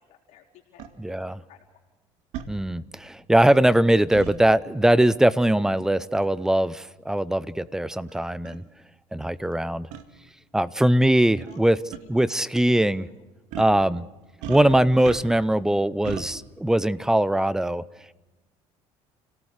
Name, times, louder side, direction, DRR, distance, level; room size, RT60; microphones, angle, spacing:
voice 1, 0.0-1.6 11.5-12.1 12.7-13.1, left 9 dB, 75° left, -3 dB, 4.0 m, -54 dB
sound 1, 0.8-0.9 2.3-2.5 4.1-4.4 6.1-6.4 7.2-7.3 8.1-8.2 8.4-8.6 9.9-10.0 11.4-11.6 11.9-12.0 13.5-13.8 14.4-15.5 16.0-16.3, right 9 dB, 80° right, 2.2 m, -36 dB
voice 2, 1.0-1.4 2.5-8.6 9.1-9.9 10.5-11.8 12.1-13.1 13.6-14.1 14.5-17.8, right 1 dB, 5° right, 18 dB, 0.7 m, -21 dB
29.5 x 18.0 x 6.6 m, 1.1 s
cardioid pair, 130°, 12 cm